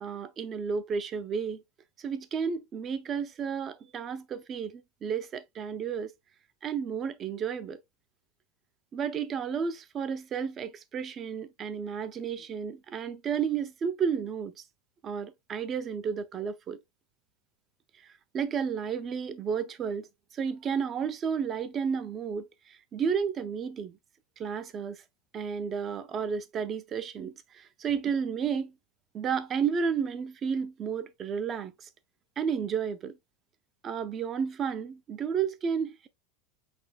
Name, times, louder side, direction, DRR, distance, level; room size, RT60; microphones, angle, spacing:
voice 1, 0.0-1.6 2.0-6.1 6.6-7.8 8.9-14.5 15.0-16.8 18.3-20.1 20.3-24.0 24.4-25.0 25.3-28.7 29.1-31.9 32.4-33.2 33.8-36.1, right 6 dB, 25° right, 0.5 m, -32 dB
4.1 x 4.1 x 2.2 m
supercardioid pair, 145°, 0 cm